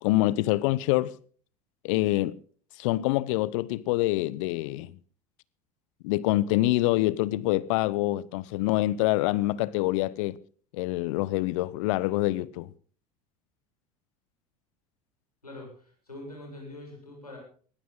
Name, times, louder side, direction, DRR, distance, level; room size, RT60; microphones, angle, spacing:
voice 1, 0.0-1.1 1.8-2.4 2.8-4.9 6.0-10.4 10.7-12.7, left 17 dB, 60° left, 0.8 m, -26 dB
voice 2, 15.4-17.4, left 1 dB, 90° left, 7.5 m, -44 dB
20.0 x 15.5 x 3.7 m
figure-of-eight pair, 75°, 19 cm